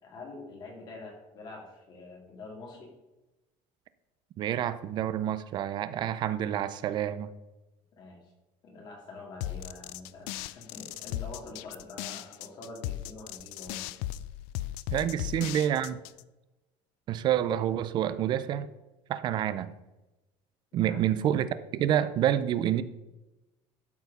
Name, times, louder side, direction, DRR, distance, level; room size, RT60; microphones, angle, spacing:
voice 1, 0.0-2.9 7.9-8.3 8.6-14.0 14.9-15.2 20.7-21.0, left 2 dB, 35° left, 0 dB, 2.3 m, -46 dB
voice 2, 4.4-7.3 14.9-16.0 17.1-18.7 19.1-19.7 20.7-22.8, right 11 dB, 35° right, 14 dB, 0.5 m, -28 dB
sound 1, 9.4-16.2, left 14 dB, 90° left, 0.4 m, -37 dB
12.0 x 4.6 x 5.4 m, 1.0 s
cardioid pair, 170°, 13 cm